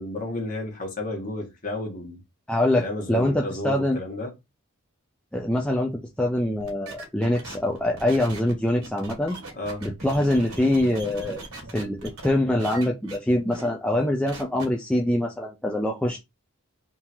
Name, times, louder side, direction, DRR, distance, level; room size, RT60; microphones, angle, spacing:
voice 1, 0.0-2.2 2.7-4.3 9.5-9.8, left 1 dB, 35° left, 1.5 m, -32 dB
voice 2, 2.5-4.0 5.3-9.4 9.8-11.4 11.7-16.2, left 1 dB, 5° left, 0.4 m, -24 dB
sound 1, 6.6-12.3 12.6-13.2 13.5-13.7 14.0-14.6, right 2 dB, 90° right, 1.8 m, -39 dB
3.8 x 2.8 x 4.4 m
head